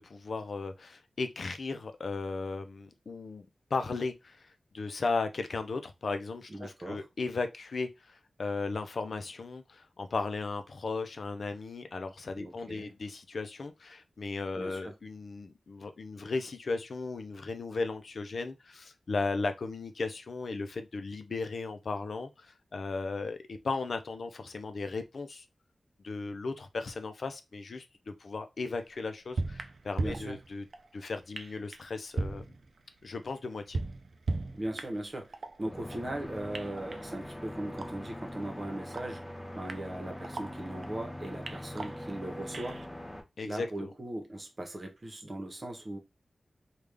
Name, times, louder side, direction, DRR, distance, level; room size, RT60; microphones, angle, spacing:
voice 1, 0.0-3.5 3.7-25.4 26.0-30.6 30.9-32.4 33.0-33.8 43.4-43.9, left 3 dB, 70° left, 0.5 m, -36 dB
voice 2, 6.5-7.0 12.4-12.9 14.5-14.9 30.0-30.4 34.5-39.2 39.5-42.8 43.4-46.0, right 1 dB, 40° right, 0.9 m, -39 dB
sound 1, 28.7-28.8 29.4-30.9 31.4-31.9 32.2-33.1 33.5-35.1 35.3-36.2 36.5-38.2 38.5-38.6 38.9-41.1 41.5-42.9, right 3 dB, 70° right, 0.4 m, -38 dB
sound 2, 35.6-43.2, left 1 dB, 10° left, 0.7 m, -42 dB
3.5 x 2.4 x 3.3 m
wide cardioid pair, 100°, 0 cm